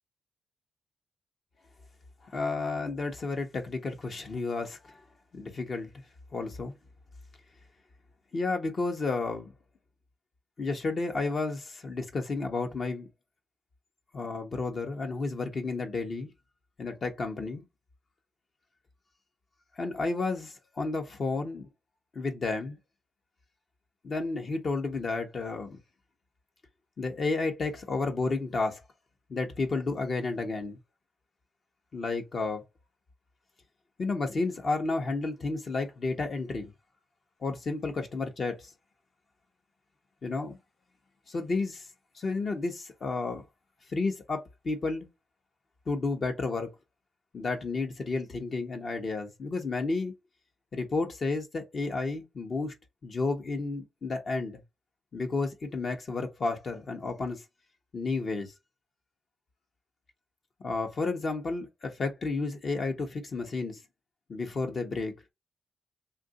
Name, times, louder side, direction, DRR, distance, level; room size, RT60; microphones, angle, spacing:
voice 1, 2.3-5.0 5.3-5.9 6.3-6.7 8.3-9.5 10.6-13.1 14.1-16.3 16.8-17.6 19.7-21.7 22.1-22.8 24.0-25.8 27.0-28.8 29.3-30.8 31.9-32.6 34.0-36.7 37.4-38.7 40.2-40.6 41.3-41.9 42.1-43.4 43.9-45.1 45.9-46.7 47.3-50.1 50.7-52.7 53.0-54.6 55.1-57.4 57.9-58.5 60.6-63.8 64.3-65.1, left 3 dB, 50° left, 0.8 m, -31 dB
2.8 x 2.5 x 3.7 m
cardioid pair, 75°, 0 cm